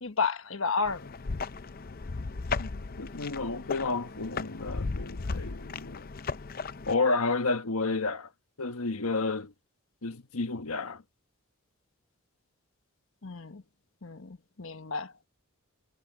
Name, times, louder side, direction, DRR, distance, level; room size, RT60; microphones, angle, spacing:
voice 1, 0.0-1.1 13.2-13.6 14.0-15.1, left 5 dB, 65° left, 1.2 m, -32 dB
sound 1, 0.8-7.0, left 4 dB, 40° left, 0.5 m, -36 dB
voice 2, 2.6-6.1 6.9-8.3 8.6-9.5 10.0-11.0, left 3 dB, 80° left, 1.4 m, -31 dB
head